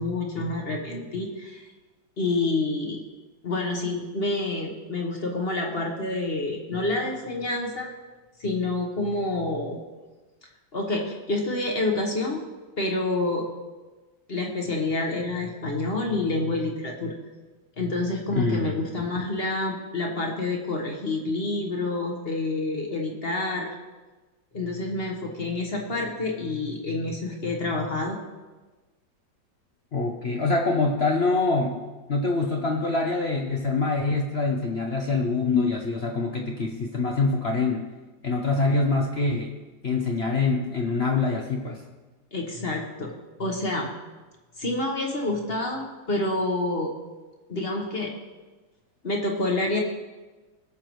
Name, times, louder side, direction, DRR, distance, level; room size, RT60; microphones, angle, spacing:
voice 1, 0.0-1.7 2.2-3.0 3.4-7.9 8.4-9.8 10.7-12.4 12.8-13.5 14.3-17.1 17.8-23.8 24.5-28.2 42.3-43.9 44.6-46.9 47.5-48.1 49.0-49.8, left 2 dB, 35° left, 1 dB, 1.3 m, -28 dB
voice 2, 18.3-19.3 29.9-31.8 32.1-37.9 38.2-39.5 39.8-41.8, left 3 dB, 55° left, 1 dB, 0.7 m, -25 dB
19.5 x 6.6 x 3.1 m, 1.2 s
omnidirectional pair, 2.1 m